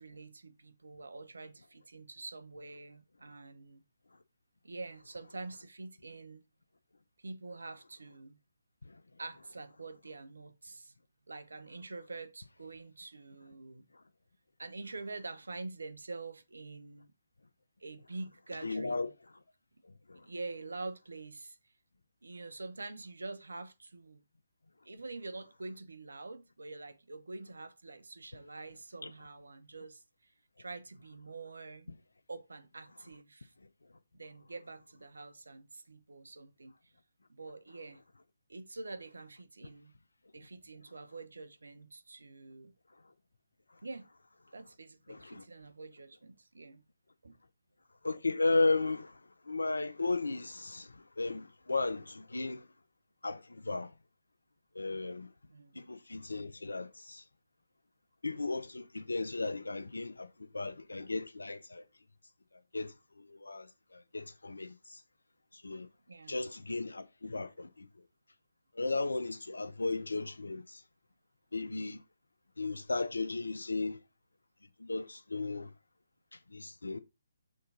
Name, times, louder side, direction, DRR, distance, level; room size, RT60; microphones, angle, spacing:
voice 1, 0.0-3.8 4.6-6.4 7.2-8.4 9.2-10.9 11.3-13.8 14.6-17.1 17.8-19.1 20.2-21.6 22.2-24.2 24.8-30.3 30.6-31.9 32.3-33.5 34.1-36.7 37.3-38.0 38.5-39.9 40.3-42.7 43.8-44.1 44.5-46.8 47.2-47.4 55.5-55.8 66.1-66.4, right 3 dB, 75° right, 1.0 m, -46 dB
voice 2, 18.6-19.1 20.1-20.3 29.0-29.1 45.1-45.4 48.0-49.2 49.4-52.7 53.2-53.9 54.7-55.3 55.7-57.2 58.2-61.8 62.7-65.0 65.5-65.9 66.3-67.9 68.7-70.8 71.5-72.0 72.6-74.0 74.8-75.7 76.3-77.0, left 3 dB, 80° left, 0.7 m, -35 dB
6.5 x 4.0 x 3.9 m
figure-of-eight pair, 140°, 0 cm